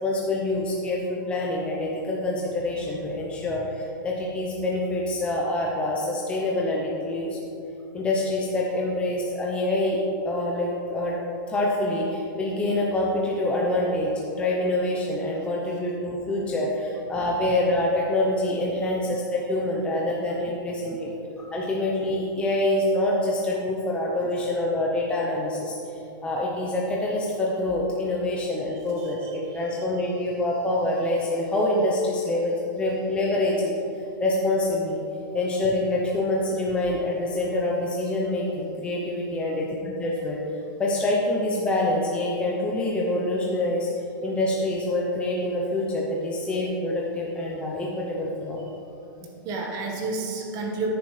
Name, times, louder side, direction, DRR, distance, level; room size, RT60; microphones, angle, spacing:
voice 1, 0.0-7.5 7.9-11.2 11.5-21.1 21.4-35.0 35.3-40.4 40.8-48.7, left 1 dB, 10° left, -3 dB, 0.7 m, -26 dB
voice 2, 29.3-29.6 49.4-50.9, right 3 dB, 30° right, 0 dB, 1.3 m, -31 dB
10.5 x 9.3 x 3.3 m, 2.8 s
hypercardioid pair, 155°, 11 cm